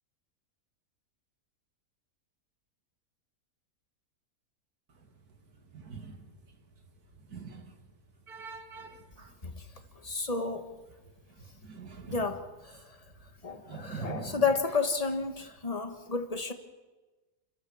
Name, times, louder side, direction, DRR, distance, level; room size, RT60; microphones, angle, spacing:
voice 1, 7.3-7.6 8.3-8.9 11.7-12.2 13.7-14.3, right 5 dB, 70° right, 6 dB, 2.5 m, -41 dB
voice 2, 10.0-10.7 12.1-13.0 13.4-16.5, left 4 dB, 25° left, 7 dB, 1.5 m, -31 dB
29.5 x 13.5 x 7.1 m, 1.2 s
omnidirectional pair, 1.7 m